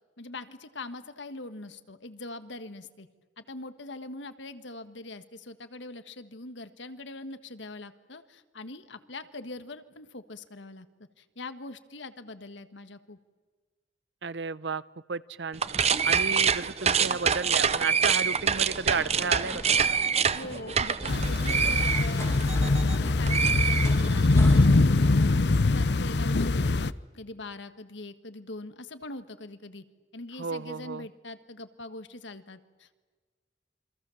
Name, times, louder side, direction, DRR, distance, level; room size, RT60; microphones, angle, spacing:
voice 1, 0.2-3.1 3.4-10.9 11.2-13.2 20.3-25.0 25.3-26.9 27.1-29.8 30.1-32.9, left 2 dB, 75° left, 11 dB, 1.6 m, -42 dB
voice 2, 14.2-14.8 15.1-15.6 16.0-20.0 30.4-31.1, right 4 dB, 70° right, 18 dB, 0.8 m, -33 dB
sound 1, 15.5-23.0 23.3-24.4, right 7 dB, 35° right, 0.8 m, -26 dB
sound 2, 17.3-25.4, left 1 dB, 15° left, 2.2 m, -45 dB
sound 3, 21.1-26.9, left 2 dB, 60° left, 0.7 m, -23 dB
28.0 x 25.0 x 7.2 m, 1.4 s
head